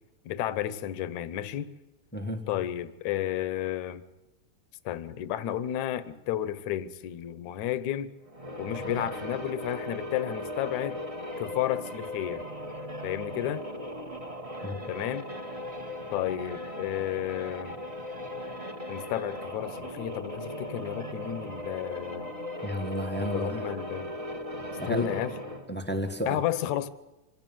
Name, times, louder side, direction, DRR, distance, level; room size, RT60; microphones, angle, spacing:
voice 1, 0.3-1.7 2.5-4.0 4.9-8.1 8.6-11.0 11.4-12.4 13.0-13.6 14.9-15.3 16.1-17.7 18.9-22.3 23.2-24.1 24.9-25.3 26.3-26.9, left 12 dB, 70° left, 14 dB, 2.3 m, -32 dB
voice 2, 2.1-2.5 14.6-14.7 22.6-23.7 24.8-25.1 25.7-26.4, equal, 15° left, 6 dB, 0.3 m, -32 dB
sound 1, 8.3-25.8, left 1 dB, 20° right, 0.9 m, -38 dB
25.5 x 17.0 x 9.4 m, 1.0 s
omnidirectional pair, 3.6 m